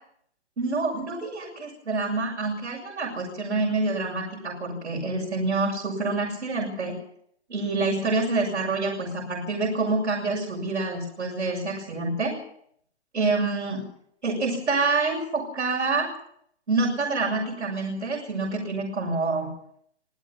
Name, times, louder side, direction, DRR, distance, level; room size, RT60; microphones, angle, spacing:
voice 1, 0.6-6.9 7.5-12.4 13.1-13.8 14.2-16.1 16.7-19.5, right 3 dB, 85° right, -3 dB, 7.2 m, -27 dB
27.0 x 17.0 x 5.6 m, 0.66 s
hypercardioid pair, 165°, 34 cm